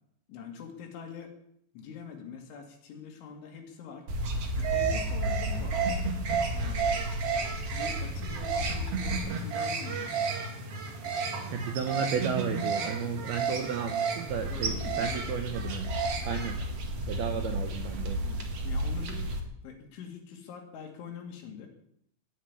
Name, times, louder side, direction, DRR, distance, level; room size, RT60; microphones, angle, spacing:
voice 1, 0.3-1.4 1.7-4.1 4.6-6.1 6.5-7.1 7.7-10.2 14.5-15.1 18.2-19.3 19.6-21.7, left 7 dB, 75° left, 3 dB, 4.5 m, -44 dB
sound 1, 4.1-19.4, right 3 dB, 60° right, 1.6 m, -31 dB
voice 2, 11.5-16.0 16.3-16.6 17.1-18.3, right 7 dB, 80° right, 5 dB, 2.3 m, -33 dB
16.5 x 6.6 x 9.5 m, 0.72 s
omnidirectional pair, 5.7 m